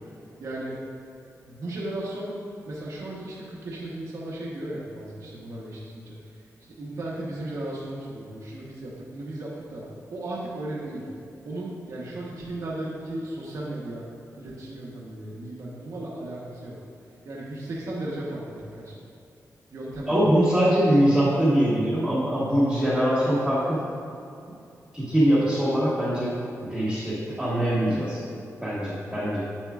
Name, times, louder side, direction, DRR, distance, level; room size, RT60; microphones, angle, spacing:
voice 1, 0.4-0.8 1.4-2.3 2.6-6.4 6.8-9.8 10.1-11.1 11.4-14.1 14.4-16.7 17.2-19.0 19.7-20.2, right 1 dB, 65° right, -6 dB, 1.0 m, -35 dB
voice 2, 20.1-23.8 24.9-26.4 26.6-28.2 28.6-29.4, equal, 5° right, -10 dB, 1.1 m, -22 dB
8.0 x 7.2 x 2.4 m, 2.6 s
wide cardioid pair, 175°, 6 cm